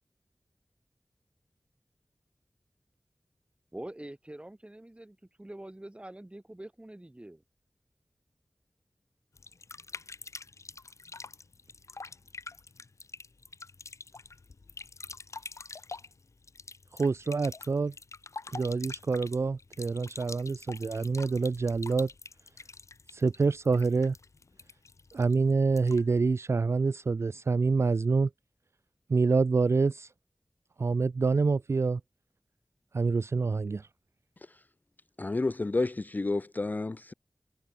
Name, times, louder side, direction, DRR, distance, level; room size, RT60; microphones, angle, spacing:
voice 1, 3.7-7.4, right 1 dB, 20° right, 7.0 m, -45 dB
sound 1, 9.3-26.2, left 4 dB, 65° left, 1.0 m, -46 dB
voice 2, 16.9-17.9 18.5-22.1 23.1-24.2 25.1-28.3 29.1-30.1 30.8-32.0 32.9-33.9, right 4 dB, 55° right, 0.4 m, -26 dB
voice 3, 35.2-37.1, left 3 dB, 35° left, 0.3 m, -30 dB
wide cardioid pair, 65°, 5 cm